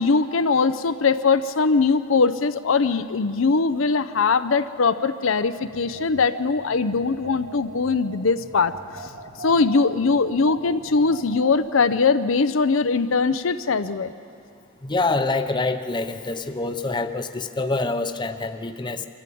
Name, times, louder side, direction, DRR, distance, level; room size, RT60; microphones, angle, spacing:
voice 1, 0.0-8.7 9.4-14.1, left 4 dB, 70° left, 11 dB, 0.6 m, -21 dB
sound 1, 5.5-11.5, right 2 dB, 55° right, 1.5 m, -41 dB
voice 2, 14.8-19.1, left 3 dB, 20° left, 8 dB, 0.7 m, -26 dB
24.5 x 14.5 x 8.5 m, 2.4 s
head